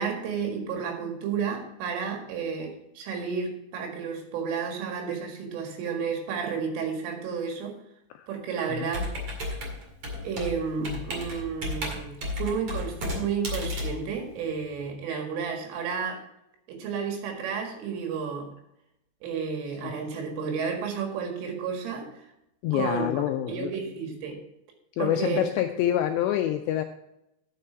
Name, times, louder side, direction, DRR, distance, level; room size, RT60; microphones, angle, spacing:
voice 1, 0.0-7.8 8.3-9.1 10.2-16.2 16.7-18.5 19.2-22.1 22.7-24.4 25.0-25.4, right 6 dB, 85° right, 2 dB, 4.4 m, -32 dB
Computer keyboard, 8.9-14.8, left 1 dB, 45° right, 2.1 m, -33 dB
voice 2, 22.6-23.7 25.0-26.8, left 11 dB, 85° left, 6 dB, 2.5 m, -27 dB
11.0 x 6.7 x 4.5 m, 0.83 s
omnidirectional pair, 5.5 m